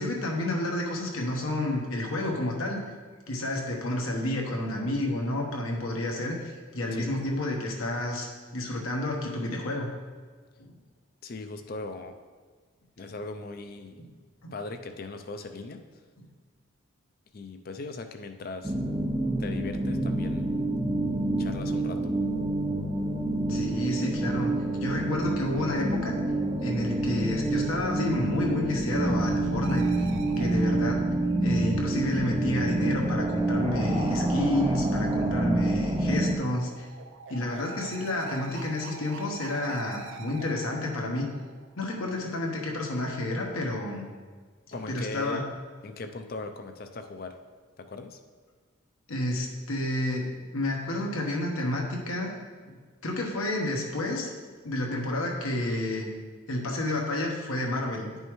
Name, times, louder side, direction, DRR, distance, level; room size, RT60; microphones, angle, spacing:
voice 1, 0.0-2.8 3.3-8.3 8.5-9.9 10.6-10.8 14.4-14.5 23.5-24.5 24.8-26.2 26.6-29.9 30.3-31.1 31.4-36.9 37.3-41.3 41.8-44.0 44.9-45.4 49.1-52.3 53.0-54.3 54.6-56.1 56.5-58.1, left 1 dB, 80° left, 0 dB, 1.2 m, -30 dB
voice 2, 11.2-12.1 13.0-14.0 14.5-15.8 17.3-18.8 19.4-20.5 21.4-22.1 44.7-45.5 45.8-47.3 47.8-48.2, left 3 dB, 45° left, 7 dB, 0.4 m, -39 dB
sound 1, 18.6-36.4, right 1 dB, 15° right, 0.4 m, -27 dB
sound 2, 29.6-32.2 35.8-42.2, right 5 dB, 65° right, 0.6 m, -45 dB
9.7 x 5.4 x 3.1 m, 1.5 s
head